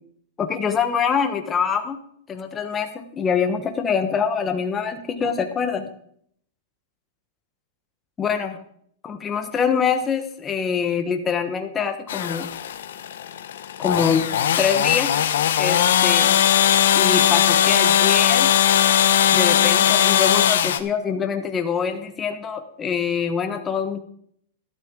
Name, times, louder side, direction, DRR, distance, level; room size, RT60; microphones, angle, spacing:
voice 1, 0.4-2.0 2.3-5.9 8.2-8.6 9.0-12.5 13.8-14.3 14.6-15.1 15.6-16.4 16.9-18.5 19.3-24.0, left 6 dB, 15° left, 6 dB, 1.3 m, -24 dB
sound 1, 12.1-20.8, left 10 dB, 75° left, 1.0 m, -19 dB
12.5 x 12.0 x 3.8 m, 0.65 s
supercardioid pair, 155°, 0 cm